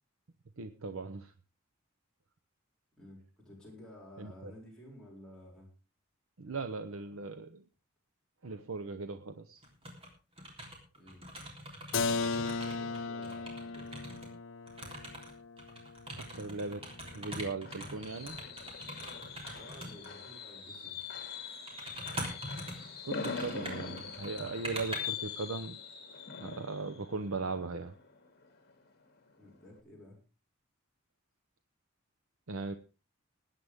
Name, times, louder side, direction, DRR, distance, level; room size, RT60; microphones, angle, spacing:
voice 1, 0.6-1.3 4.2-4.5 6.4-7.6 8.4-9.6 16.2-16.8 17.1-18.4 23.0-25.8 26.4-27.9 32.5-32.7, right 3 dB, 80° right, 9 dB, 0.8 m, -38 dB
voice 2, 3.0-5.7 10.9-11.3 12.2-14.1 19.6-21.0 29.4-30.2, equal, 5° left, -4 dB, 6.3 m, -53 dB
sound 1, 9.6-10.1 10.4-14.3 14.7-20.1 21.0-21.2 21.7-25.0, right 1 dB, 25° right, 3.6 m, -43 dB
Keyboard (musical), 11.9-17.5, left 4 dB, 70° left, 0.7 m, -37 dB
Fireworks, 17.0-28.7 29.1-29.4 29.6-29.7, left 6 dB, 50° left, 2.6 m, -43 dB
20.5 x 9.3 x 3.6 m, 0.33 s
head